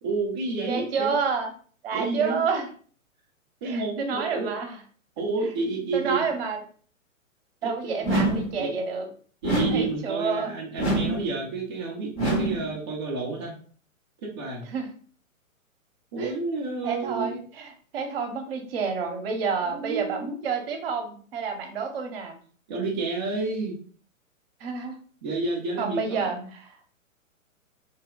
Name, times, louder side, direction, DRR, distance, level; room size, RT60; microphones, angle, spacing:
voice 1, 0.0-1.2 1.9-2.4 3.6-4.5 5.2-6.3 7.6-7.7 8.0-8.2 8.6-8.8 9.4-13.5 14.2-14.6 16.1-17.4 19.5-20.3 22.7-23.8 25.2-26.5, right 3 dB, 20° right, -4 dB, 0.4 m, -30 dB
voice 2, 0.7-1.5 1.8-2.7 3.6-4.8 5.9-6.6 7.6-9.1 9.7-10.5 14.7-14.9 16.2-16.3 16.8-22.4 24.6-24.9 25.8-26.7, right 5 dB, 45° right, 4 dB, 0.8 m, -29 dB
sound 1, 8.0-8.6 9.4-10.0 10.8-11.3 12.2-12.7, right 1 dB, 20° left, 0.7 m, -25 dB
3.3 x 2.2 x 3.6 m, 0.44 s
figure-of-eight pair, 125°, 41 cm